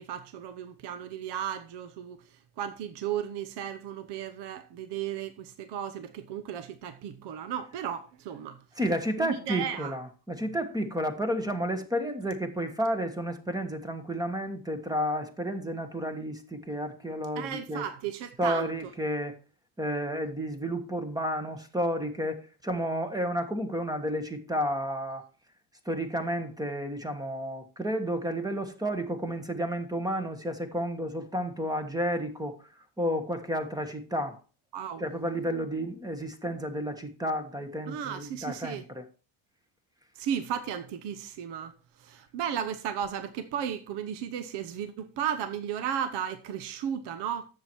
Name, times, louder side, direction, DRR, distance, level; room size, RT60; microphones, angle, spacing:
voice 1, 0.0-2.2 2.6-8.6 9.2-9.9 17.4-18.7 34.7-35.1 37.9-38.8 40.1-41.7 42.0-47.5, right 9 dB, 55° right, 1.0 m, -34 dB
voice 2, 8.8-17.8 18.4-19.3 19.8-25.2 25.8-32.5 33.0-34.4 35.0-39.0, equal, 10° right, 1.3 m, -31 dB
10.5 x 7.7 x 4.5 m
cardioid pair, 140°, 49 cm